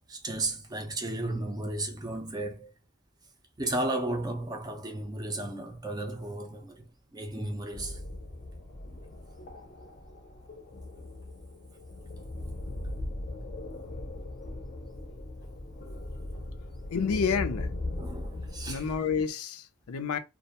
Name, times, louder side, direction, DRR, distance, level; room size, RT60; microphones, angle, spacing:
voice 1, 0.1-2.7 3.6-8.0 17.9-18.9, right 2 dB, 20° right, 0.4 m, -34 dB
sound 1, 7.7-19.0, left 2 dB, 35° left, 0.5 m, -39 dB
voice 2, 16.9-17.7 18.7-20.2, left 6 dB, 90° left, 0.4 m, -29 dB
2.4 x 2.2 x 2.8 m
head